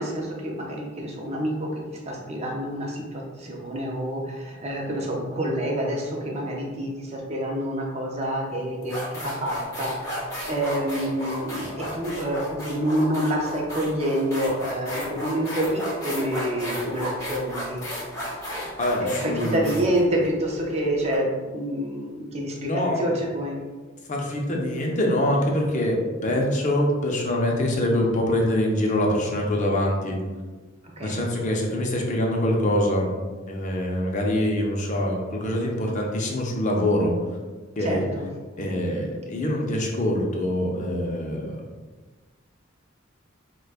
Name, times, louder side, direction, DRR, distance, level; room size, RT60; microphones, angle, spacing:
voice 1, 0.0-17.8 19.0-23.6 31.0-31.2 37.8-38.3, right 1 dB, 30° right, -1 dB, 0.6 m, -27 dB
sound 1, 8.2-8.4 8.8-21.1, equal, 15° left, 0.9 m, -34 dB
voice 2, 18.8-19.8 22.6-23.1 24.1-30.2 31.0-33.1 33.5-37.2 37.8-38.0 38.6-41.6, left 1 dB, 40° left, 0 dB, 0.6 m, -24 dB
4.8 x 2.2 x 2.4 m, 1.3 s
head